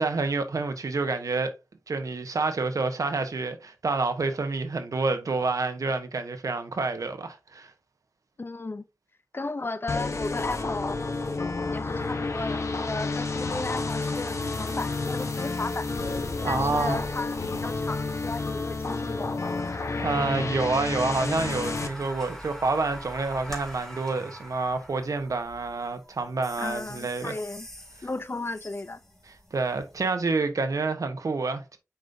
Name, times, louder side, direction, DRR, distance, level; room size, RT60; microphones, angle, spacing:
voice 1, 0.0-1.5 1.9-7.7 16.4-17.0 20.0-27.3 29.5-31.8, right 3 dB, 85° right, 1.1 m, -28 dB
voice 2, 8.4-8.8 9.3-11.0 11.7-15.9 16.4-19.4 26.6-27.7 28.0-29.0, left 3 dB, 40° left, 0.6 m, -34 dB
sound 1, 9.9-21.9, left 3 dB, 60° left, 1.3 m, -30 dB
sound 2, 21.1-30.1, equal, 5° left, 2.8 m, -44 dB
7.2 x 5.4 x 2.7 m
wide cardioid pair, 85°, 6 cm